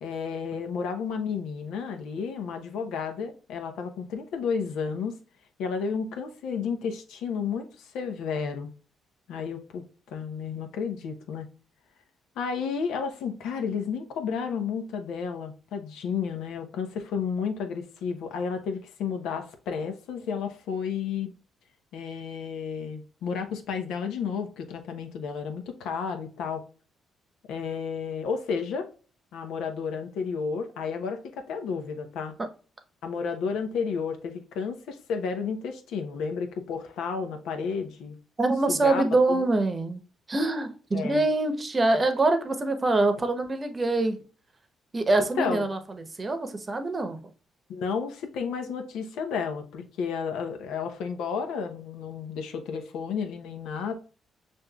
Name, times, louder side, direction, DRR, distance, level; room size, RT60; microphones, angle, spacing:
voice 1, 0.0-5.1 5.6-8.7 9.3-11.5 12.4-21.3 21.9-26.6 27.5-28.9 29.3-32.3 33.0-38.2 38.7-39.4 40.9-41.2 45.4-45.7 47.7-53.9, left 6 dB, 85° left, 0.8 m, -32 dB
voice 2, 38.4-40.0 40.3-44.2 44.9-45.8 46.2-47.2, right 2 dB, 30° right, 0.8 m, -24 dB
6.5 x 2.6 x 2.3 m
cardioid pair, 90°, 0 cm